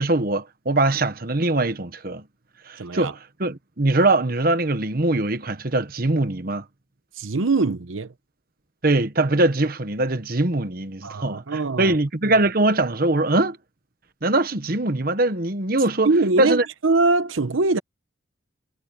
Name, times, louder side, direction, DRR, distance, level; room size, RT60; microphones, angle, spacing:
voice 1, 0.0-2.2 2.7-6.6 8.8-13.6 14.2-16.1 16.4-16.6, right 2 dB, 50° right, 1.2 m, -22 dB
voice 2, 2.8-3.1 7.2-8.1 11.0-12.0 16.0-17.8, right 3 dB, 90° right, 0.9 m, -22 dB
head